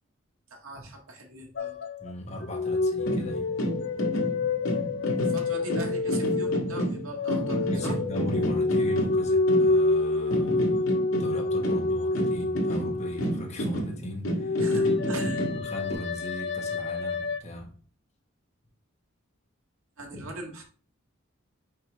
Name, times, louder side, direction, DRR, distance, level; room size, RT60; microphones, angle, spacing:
voice 1, 0.5-1.8 5.2-8.0 14.6-15.4 20.0-20.6, right 1 dB, 85° right, 1.7 m, -40 dB
sound 1, 1.6-2.1 2.4-13.5 14.4-17.4, left 3 dB, 55° left, 0.4 m, -27 dB
voice 2, 2.0-3.5 7.7-14.6 15.5-17.7, left 1 dB, 30° left, 1.3 m, -38 dB
sound 2, 3.0-10.0 10.3-15.9, right 1 dB, 75° left, 1.6 m, -31 dB
5.9 x 4.9 x 3.3 m
head